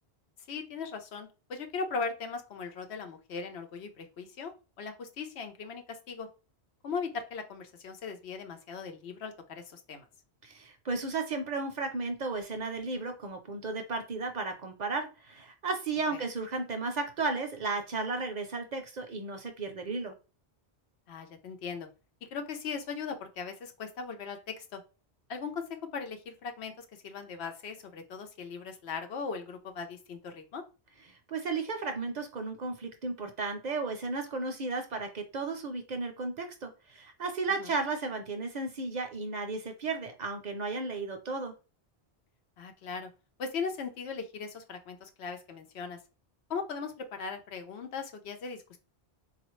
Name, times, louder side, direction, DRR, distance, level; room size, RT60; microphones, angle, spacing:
voice 1, 0.5-4.5 4.8-6.3 6.8-10.1 16.1-16.2 21.1-21.9 22.3-24.8 25.3-30.6 37.6-37.7 42.6-43.1 43.4-46.0 46.5-48.8, left 5 dB, 85° left, 6 dB, 1.0 m, -38 dB
voice 2, 10.4-20.1 31.1-41.5, right 3 dB, 50° right, 6 dB, 0.6 m, -34 dB
3.9 x 2.4 x 3.0 m, 0.31 s
omnidirectional pair, 1.1 m